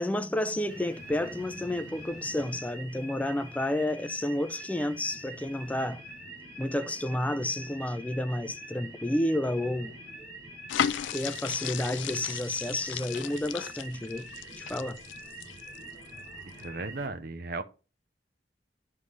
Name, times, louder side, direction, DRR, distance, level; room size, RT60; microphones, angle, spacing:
voice 1, 0.0-6.0 6.6-10.0 11.1-14.3 14.6-15.0, left 1 dB, 10° left, 0.4 m, -30 dB
sound 1, 0.7-17.1, right 1 dB, 20° right, 4.7 m, -45 dB
sound 2, 10.7-16.1 16.5-16.6, left 9 dB, 85° left, 0.4 m, -35 dB
voice 2, 16.5-17.6, right 3 dB, 55° right, 0.6 m, -36 dB
9.8 x 3.3 x 5.4 m
head